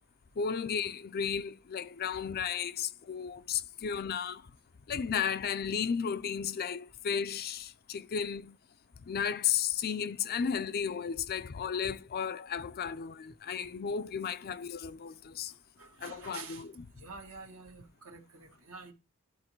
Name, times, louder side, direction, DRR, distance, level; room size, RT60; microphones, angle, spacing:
voice 1, 0.4-4.4 4.9-8.6 9.1-15.5 16.0-16.7, left 7 dB, 45° left, 0.4 m, -34 dB
voice 2, 15.8-16.7 17.0-18.9, right 4 dB, 70° right, 1.6 m, -48 dB
11.0 x 4.0 x 4.5 m
head